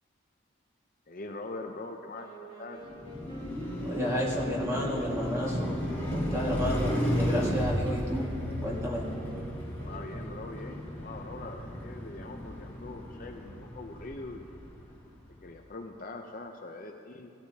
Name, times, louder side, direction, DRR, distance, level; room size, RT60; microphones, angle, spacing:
voice 1, 1.1-2.8 9.8-14.5 15.4-17.3, left 2 dB, 40° left, 3 dB, 0.6 m, -42 dB
Wind instrument woodwind instrument, 2.1-10.5, right 2 dB, 45° right, 3.0 m, -48 dB
Car passing by, 2.8-15.1, equal, 10° left, 1.8 m, -34 dB
voice 2, 3.8-8.3 8.6-9.1, equal, 15° right, -4 dB, 1.7 m, -32 dB
17.0 x 13.0 x 2.8 m, 2.5 s
head